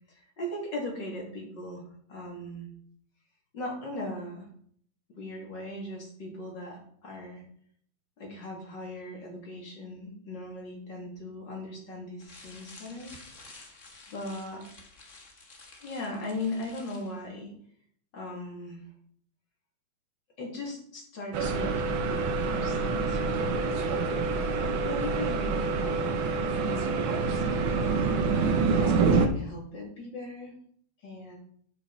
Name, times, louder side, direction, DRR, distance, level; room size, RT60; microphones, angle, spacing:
voice 1, 0.1-2.7 3.5-4.5 5.2-7.4 8.2-13.1 14.1-14.6 15.8-17.5 18.1-18.9 20.4-24.1 24.6-26.1 26.6-28.2 28.7-30.6 31.0-31.4, left 1 dB, 60° left, -1 dB, 3.5 m, -39 dB
sound 1, 12.2-17.2, left 3 dB, 40° left, 1.9 m, -51 dB
sound 2, 21.3-29.3, right 4 dB, 70° right, 1.7 m, -27 dB
12.0 x 6.3 x 4.3 m, 0.62 s
omnidirectional pair, 2.2 m